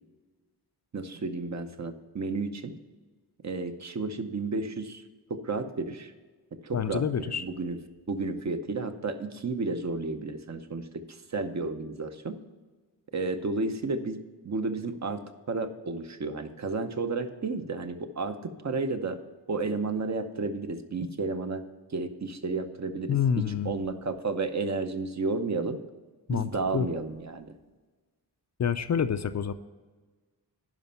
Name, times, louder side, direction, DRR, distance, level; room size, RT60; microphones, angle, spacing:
voice 1, 0.9-2.8 3.4-5.0 5.3-6.1 6.5-7.8 8.1-12.4 13.1-14.2 14.4-18.4 18.6-19.2 19.5-21.6 21.9-23.2 23.5-25.8 26.3-27.5, right 3 dB, 45° right, 8 dB, 0.8 m, -32 dB
voice 2, 6.7-7.5 23.1-23.7 26.3-26.9 28.6-29.5, left 8 dB, 45° left, 11 dB, 0.4 m, -27 dB
11.0 x 5.2 x 5.6 m, 1.3 s
wide cardioid pair, 110°, 40 cm